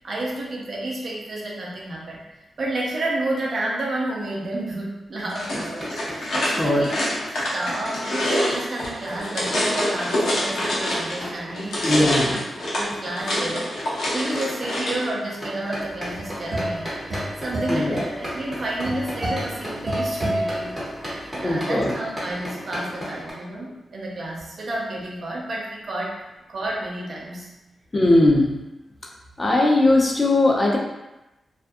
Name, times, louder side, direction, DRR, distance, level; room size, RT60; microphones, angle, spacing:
voice 1, 0.0-7.2 7.5-12.4 12.7-26.2 26.5-27.5, right 1 dB, 60° right, -3 dB, 0.6 m, -31 dB
sound 1, 5.3-11.2 11.5-15.1, left 1 dB, 85° left, 0.7 m, -26 dB
sound 2, 5.4-23.3, equal, ahead, 1.1 m, -36 dB
voice 2, 11.8-12.4 17.7-18.0 21.4-21.9 27.9-28.5 29.4-30.8, left 1 dB, 30° left, -2 dB, 0.5 m, -19 dB
sound 3, 15.9-21.3, right 1 dB, 20° right, 1.1 m, -30 dB
2.4 x 2.2 x 2.6 m, 0.98 s
cardioid pair, 70°, 0 cm